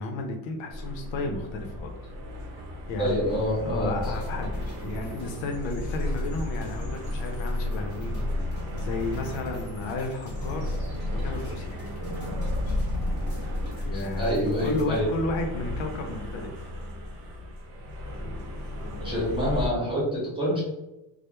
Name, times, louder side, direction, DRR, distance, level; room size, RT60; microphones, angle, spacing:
voice 1, 0.0-1.9 2.9-3.1 3.6-10.7 11.1-11.8 13.8-16.5, left 2 dB, 65° left, 3 dB, 0.5 m, -33 dB
sound 1, 0.7-19.7, left 1 dB, 65° right, 0.8 m, -33 dB
voice 2, 3.0-3.9 13.9-15.0 19.0-20.6, equal, 10° right, -7 dB, 0.5 m, -27 dB
sound 2, 4.0-15.0, equal, 20° left, 0.9 m, -45 dB
2.2 x 2.0 x 2.9 m, 0.94 s
cardioid pair, 165°, 49 cm